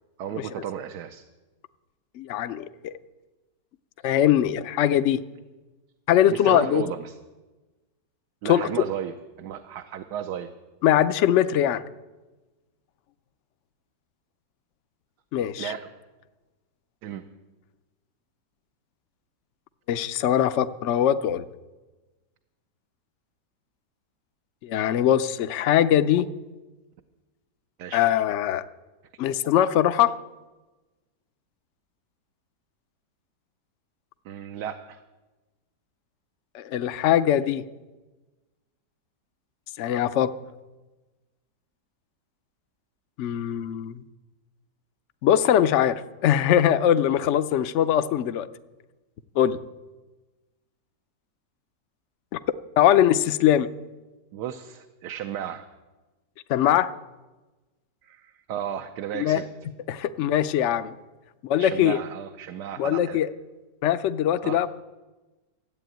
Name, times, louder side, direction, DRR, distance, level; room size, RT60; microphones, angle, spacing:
voice 1, 0.2-1.2 6.3-7.1 8.4-10.5 15.6-15.9 17.0-17.2 27.8-28.0 34.2-35.0 54.3-55.6 58.0-59.4 61.6-63.2 64.4-64.6, right 9 dB, 75° right, 6 dB, 1.3 m, -34 dB
voice 2, 2.2-2.9 4.0-5.2 6.1-6.8 8.4-8.7 10.8-11.8 15.3-15.7 19.9-21.4 24.6-26.3 27.9-28.6 29.2-30.2 36.5-37.6 39.8-40.3 43.2-44.0 45.2-48.5 49.4-49.6 52.3-52.4 52.8-53.7 56.5-56.9 59.1-59.4 59.9-60.9 61.4-62.0 62.8-63.3 63.8-64.7, left 10 dB, 65° left, 13 dB, 0.7 m, -21 dB
14.5 x 8.4 x 9.1 m, 1.2 s
omnidirectional pair, 1.8 m